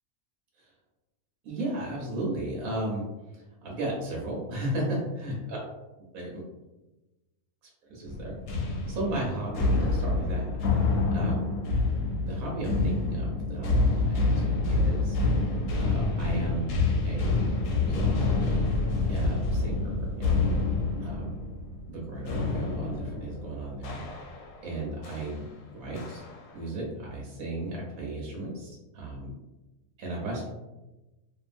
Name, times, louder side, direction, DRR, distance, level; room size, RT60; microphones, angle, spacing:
voice 1, 1.4-3.0 3.3-5.6 6.1-6.4 7.9-8.4 8.9-10.6 11.1-11.5 12.2-15.2 15.8-16.7 17.0-17.5 17.8-18.4 18.8-20.7 21.0-21.3 21.9-24.3 24.6-26.3 26.5-29.3 30.0-30.4, right 1 dB, 75° right, -3 dB, 1.2 m, -35 dB
sound 1, 8.1-24.6 25.0-25.3 26.0-26.5, left 3 dB, 70° left, 0.9 m, -27 dB
2.7 x 2.4 x 2.4 m, 1.0 s
omnidirectional pair, 1.5 m